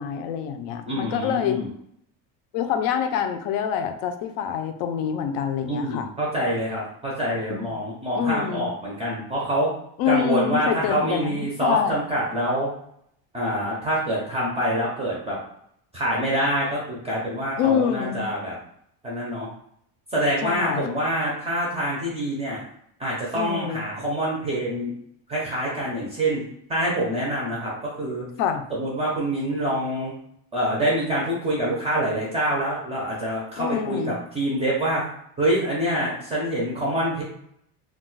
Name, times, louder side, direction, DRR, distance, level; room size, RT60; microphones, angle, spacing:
voice 1, 0.0-1.6 2.5-6.1 7.5-7.7 8.1-8.7 10.0-12.0 17.6-18.3 20.4-20.9 23.3-23.9 28.4-28.6 33.6-34.2, left 8 dB, 80° left, 7 dB, 0.5 m, -26 dB
voice 2, 0.9-1.7 5.7-9.7 10.1-12.7 13.3-15.4 15.9-18.5 19.0-19.5 20.1-22.6 23.0-24.9 25.3-26.4 26.7-27.7 28.0-28.2 28.7-30.1 30.5-35.0 35.4-37.2, right 1 dB, 15° right, -4 dB, 0.4 m, -26 dB
2.4 x 2.2 x 3.8 m, 0.70 s
cardioid pair, 175°, 41 cm